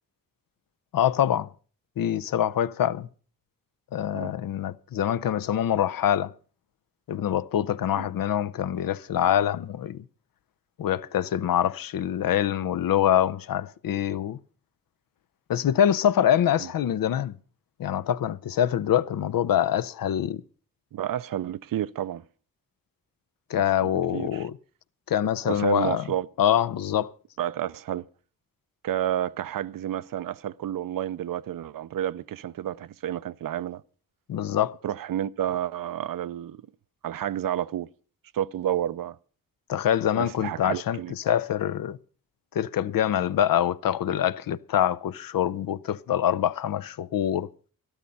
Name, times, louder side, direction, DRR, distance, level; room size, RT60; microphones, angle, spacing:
voice 1, 0.9-1.5 2.0-3.1 3.9-6.3 7.1-10.0 10.8-14.4 15.5-17.3 17.8-20.4 23.5-24.6 25.1-26.0 26.4-27.1 34.3-34.8 39.7-41.0 41.2-42.0 42.5-47.5, left 10 dB, 75° left, 0.6 m, -25 dB
voice 2, 20.9-22.2 23.8-24.5 25.4-26.3 27.4-28.0 28.8-33.8 34.8-36.7 37.0-37.9 38.3-39.2 40.1-41.1, right 11 dB, 70° right, 0.5 m, -30 dB
12.5 x 12.5 x 5.3 m
wide cardioid pair, 110°, 34 cm